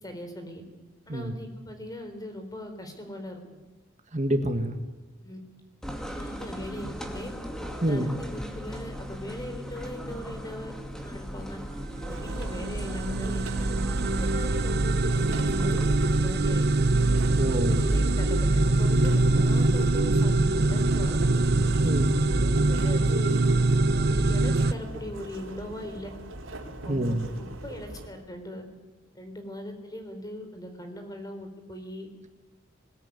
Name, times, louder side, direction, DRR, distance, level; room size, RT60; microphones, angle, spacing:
voice 1, 0.0-0.6 1.1-3.4 5.2-5.4 6.1-7.3 7.9-11.6 12.1-13.7 14.2-16.7 17.6-21.2 22.0-23.4 24.1-26.1 26.8-28.7 29.1-32.1, left 1 dB, 20° left, 6 dB, 3.8 m, -40 dB
voice 2, 4.1-4.7 7.8-8.2 17.4-17.8 21.8-22.2 26.9-27.3, right 1 dB, 35° right, 6 dB, 1.6 m, -26 dB
sound 1, 5.8-15.9, equal, 5° left, 2.5 m, -38 dB
sound 2, 11.3-24.7, right 2 dB, 55° right, 0.9 m, -24 dB
sound 3, 12.1-28.1, right 1 dB, 80° right, 4.0 m, -42 dB
21.0 x 20.0 x 9.5 m, 1.2 s
head